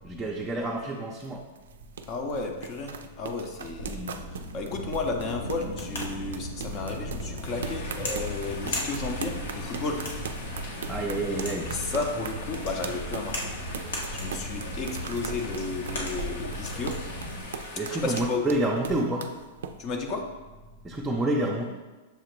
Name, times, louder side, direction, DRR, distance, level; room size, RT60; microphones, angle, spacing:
voice 1, 0.0-1.4 3.8-4.2 10.9-11.7 17.8-19.3 20.8-21.6, right 1 dB, 10° right, -3 dB, 0.5 m, -28 dB
sound 1, 0.7-19.7, right 6 dB, 85° right, 0.3 m, -40 dB
voice 2, 2.0-4.1 4.5-10.0 11.7-13.6 13.8-17.0 17.9-18.4 19.8-20.2, left 3 dB, 35° left, 3 dB, 0.6 m, -33 dB
sound 2, 3.6-17.5, equal, 85° left, 1.1 m, -36 dB
sound 3, 7.4-18.3, left 3 dB, 70° left, 0.8 m, -42 dB
6.5 x 2.4 x 3.0 m, 1.2 s
hypercardioid pair, 135°, 0 cm